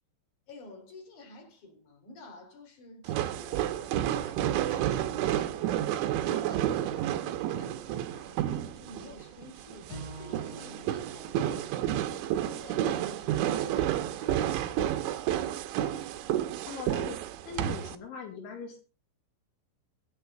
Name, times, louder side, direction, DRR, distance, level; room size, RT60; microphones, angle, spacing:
voice 1, 0.5-6.0 6.2-12.3 12.6-14.9, left 1 dB, 40° left, 5.0 m, -49 dB
sound 1, 3.1-18.0, right 12 dB, 85° right, 3.4 m, -30 dB
Bowed string instrument, 9.9-13.2, right 2 dB, 20° left, 4.3 m, -47 dB
voice 2, 16.6-17.2 17.5-18.8, left 5 dB, 80° left, 5.2 m, -40 dB
25.0 x 9.7 x 3.8 m
omnidirectional pair, 5.4 m